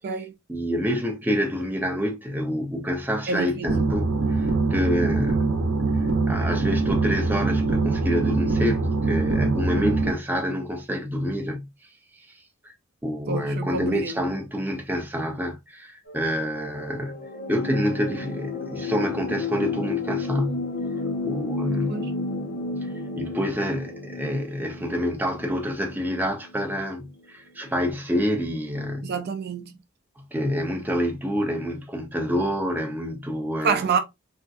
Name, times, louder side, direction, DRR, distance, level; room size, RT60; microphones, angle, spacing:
voice 1, 0.5-5.5 6.3-11.7 12.6-12.7 13.0-17.2 17.5-20.7 21.2-22.0 23.2-29.1 30.3-33.8, equal, 10° right, 0.6 m, -27 dB
voice 2, 3.3-3.7 13.3-14.1 21.9-22.1 29.0-29.8 33.6-34.0, right 5 dB, 50° right, 0.4 m, -27 dB
sound 1, 3.7-10.1, right 3 dB, 85° right, 0.7 m, -23 dB
sound 2, 16.1-26.8 27.7-27.8, left 3 dB, 45° left, 0.9 m, -32 dB
3.5 x 2.6 x 2.4 m
head